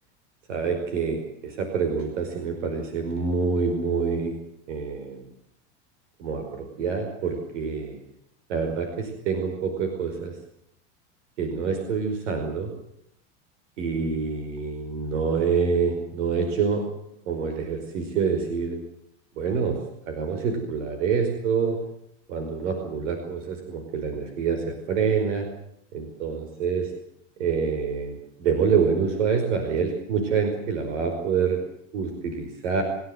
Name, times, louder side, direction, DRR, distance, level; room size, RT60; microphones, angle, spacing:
voice 1, 0.5-4.3 4.7-5.2 6.2-8.0 8.5-10.4 11.4-12.7 13.8-16.9 17.3-18.8 19.4-21.8 22.3-25.5 25.9-26.9 27.4-31.6 31.9-32.8, right 5 dB, 90° right, 5 dB, 5.3 m, -26 dB
27.5 x 16.5 x 8.1 m, 0.75 s
supercardioid pair, 135°, 36 cm